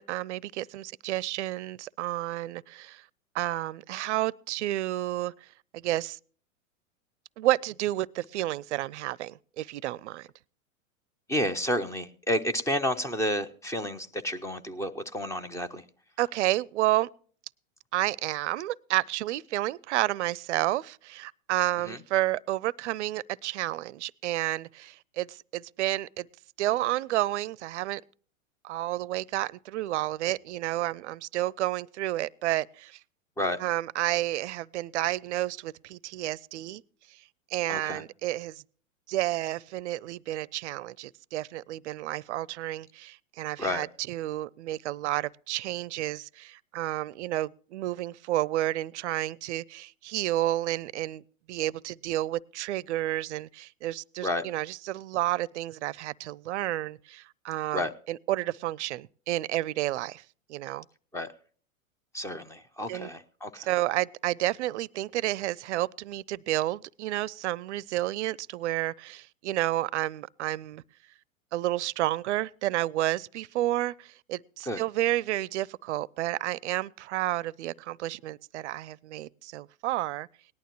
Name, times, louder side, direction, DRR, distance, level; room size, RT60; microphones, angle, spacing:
voice 1, 0.0-3.0 3.3-6.2 7.4-10.3 16.2-17.1 17.9-26.3 26.6-28.0 28.6-33.0 33.6-36.8 37.1-37.2 37.5-38.6 39.1-51.2 51.5-60.2 60.5-60.9 62.9-63.1 63.6-70.8 71.5-80.3, right 15 dB, 60° right, 0.5 m, -31 dB
voice 2, 11.3-15.8 21.9-22.0 33.4-33.6 37.7-38.0 43.6-43.9 54.2-54.4 57.7-57.9 61.1-61.3 62.1-63.7 74.6-74.8, left 1 dB, 10° left, 0.5 m, -30 dB
18.5 x 11.5 x 3.0 m
hypercardioid pair, 105°, 40 cm